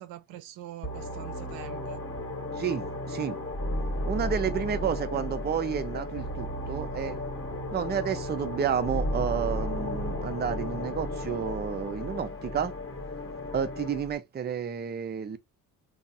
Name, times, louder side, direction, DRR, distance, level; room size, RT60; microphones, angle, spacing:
voice 1, 0.0-2.0, right 13 dB, 65° right, 0.6 m, -44 dB
sound 1, 0.8-14.2, left 1 dB, 30° left, 1.1 m, -34 dB
voice 2, 2.6-3.4 4.0-7.2 7.7-12.7 13.5-15.4, right 7 dB, 20° right, 0.5 m, -31 dB
3.3 x 2.0 x 2.6 m
hypercardioid pair, 55°, 48 cm